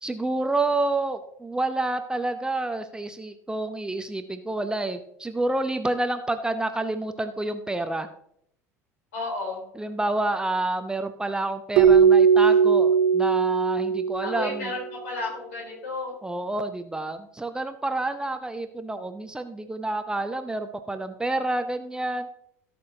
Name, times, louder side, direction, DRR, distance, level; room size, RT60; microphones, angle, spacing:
voice 1, 0.0-8.1 9.8-14.7 16.2-22.3, right 2 dB, 10° right, 8 dB, 0.7 m, -29 dB
voice 2, 9.1-9.6 14.2-16.1, left 2 dB, 65° left, -2 dB, 3.7 m, -32 dB
Keyboard (musical), 11.8-14.6, right 6 dB, 55° right, 1.2 m, -18 dB
17.5 x 6.0 x 2.8 m, 0.70 s
figure-of-eight pair, 65°, 8 cm